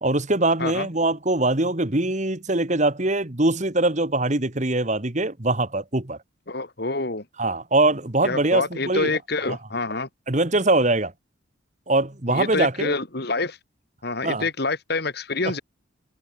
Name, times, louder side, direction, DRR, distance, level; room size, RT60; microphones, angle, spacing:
voice 1, 0.0-6.2 7.4-9.1 9.5-9.6 10.3-11.1 11.9-12.9 14.2-14.5, right 2 dB, 35° right, 1.7 m, -22 dB
voice 2, 6.5-7.2 8.2-10.1 12.3-13.6 14.0-15.6, left 3 dB, 55° left, 1.9 m, -27 dB
head